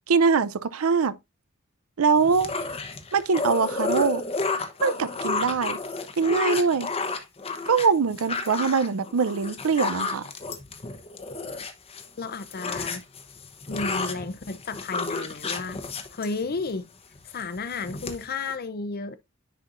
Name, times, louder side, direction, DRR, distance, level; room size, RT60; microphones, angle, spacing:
voice 1, 0.1-1.2 2.0-2.5 3.1-4.2 4.8-5.8 6.2-6.9 7.7-10.3, right 5 dB, 90° right, 0.6 m, -23 dB
sound 1, 2.2-12.1 12.3-16.8 17.2-17.4 17.7-18.5, left 3 dB, 30° left, 0.9 m, -31 dB
voice 2, 12.2-13.0 13.7-15.8 16.1-16.9 17.2-19.2, left 4 dB, 45° left, 0.6 m, -32 dB
10.0 x 4.5 x 2.5 m
head